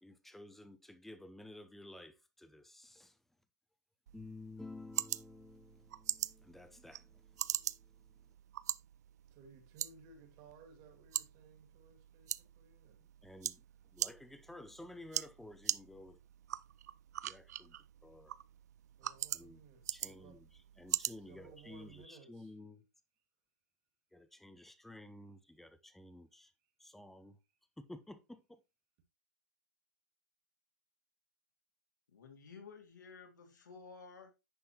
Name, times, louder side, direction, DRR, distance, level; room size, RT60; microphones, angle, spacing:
voice 1, 0.0-3.2 4.1-8.1 13.2-13.6 13.9-16.2 17.2-17.8 18.0-18.3 19.3-19.6 19.9-20.5 20.8-22.8 24.1-26.5 26.8-27.4 27.9-28.6, left 2 dB, ahead, 0.8 m, -53 dB
sound 1, 4.1-22.1, right 12 dB, 60° right, 0.4 m, -43 dB
voice 2, 9.3-13.0 19.0-20.5 21.3-22.5, right 5 dB, 40° right, 2.4 m, -59 dB
voice 3, 32.1-34.3, left 5 dB, 75° left, 2.9 m, -53 dB
10.0 x 5.7 x 2.9 m
hypercardioid pair, 130°, 10 cm